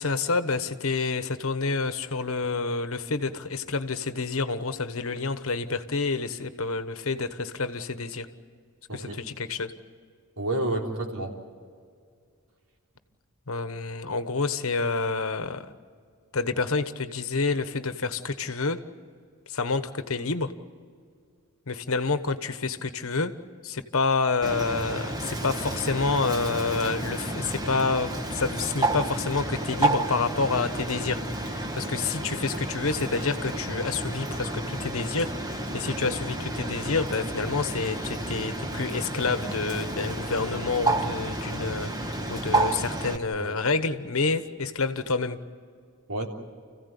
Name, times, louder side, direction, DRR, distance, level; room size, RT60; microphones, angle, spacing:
voice 1, 0.0-8.3 8.9-9.7 13.5-15.7 16.3-18.8 19.5-20.5 21.7-23.3 23.6-45.4, left 4 dB, 65° left, 10 dB, 1.2 m, -28 dB
voice 2, 10.4-11.3 43.1-43.6 46.1-46.3, right 2 dB, 75° right, 1 dB, 3.6 m, -30 dB
Bird, 24.4-43.2, right 2 dB, 15° right, 1.3 m, -31 dB
30.0 x 16.0 x 8.4 m, 2.1 s
head